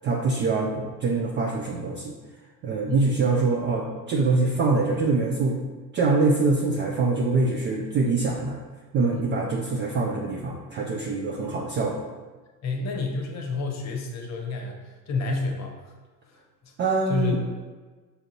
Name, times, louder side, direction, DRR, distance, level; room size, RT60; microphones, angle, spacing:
voice 1, 0.0-2.1 2.6-5.6 5.9-8.6 8.9-12.1 16.8-17.4, right 3 dB, 25° right, -1 dB, 0.3 m, -24 dB
voice 2, 12.6-15.9 16.2-16.7 17.1-17.4, left 3 dB, 35° left, 2 dB, 0.9 m, -30 dB
5.4 x 2.5 x 2.9 m, 1.3 s
hypercardioid pair, 75°, 47 cm